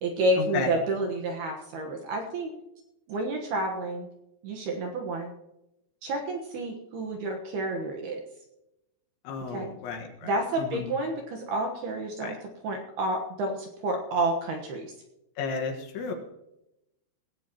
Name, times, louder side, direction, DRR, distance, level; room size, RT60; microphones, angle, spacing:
voice 1, 0.0-2.5 3.1-4.1 4.4-5.3 6.0-8.2 9.5-9.7 10.2-12.4 12.6-14.9, right 2 dB, 65° right, 2 dB, 2.7 m, -30 dB
voice 2, 9.3-10.3 10.6-11.0 12.2-12.4 15.4-16.1, left 5 dB, 70° left, 3 dB, 3.7 m, -33 dB
19.0 x 16.5 x 3.0 m, 0.89 s
omnidirectional pair, 5.9 m